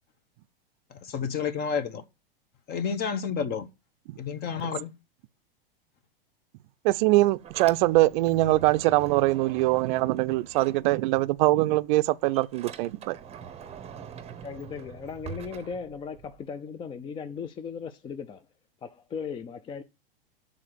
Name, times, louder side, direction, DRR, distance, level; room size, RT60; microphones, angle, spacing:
voice 1, 0.9-2.0 2.7-3.7 4.2-4.9, left 6 dB, 30° left, 0.9 m, -30 dB
voice 2, 6.8-13.2, right 18 dB, 55° right, 0.5 m, -23 dB
Sliding door, 7.1-11.4 11.7-16.4, right 7 dB, 20° right, 0.8 m, -44 dB
voice 3, 14.4-18.4 18.8-19.8, left 6 dB, 15° left, 0.4 m, -37 dB
6.5 x 3.8 x 6.1 m
hypercardioid pair, 115°, 29 cm